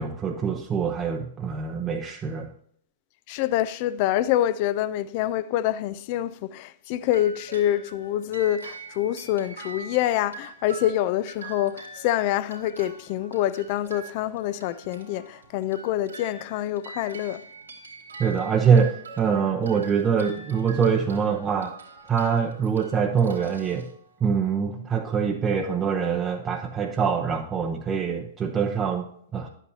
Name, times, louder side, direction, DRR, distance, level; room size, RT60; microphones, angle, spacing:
voice 1, 0.0-2.5 18.2-21.7 22.1-23.9 24.2-29.5, right 6 dB, 20° right, 0.7 m, -24 dB
voice 2, 3.3-17.4, left 12 dB, 45° left, 0.4 m, -26 dB
sound 1, 7.1-24.5, right 3 dB, 90° right, 2.2 m, -44 dB
11.0 x 8.2 x 2.8 m
figure-of-eight pair, 105°, 0 cm